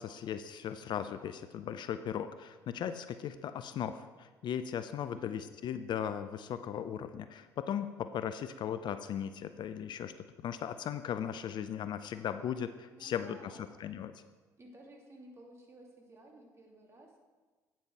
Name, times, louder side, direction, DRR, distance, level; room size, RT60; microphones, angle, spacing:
voice 1, 0.0-10.1 10.4-13.5 13.8-14.1, left 9 dB, 50° left, 12 dB, 0.5 m, -37 dB
voice 2, 5.0-5.3 12.9-13.7 14.6-17.2, right 1 dB, 30° right, 0 dB, 2.6 m, -55 dB
8.9 x 7.4 x 4.6 m, 1.3 s
hypercardioid pair, 55°, 10 cm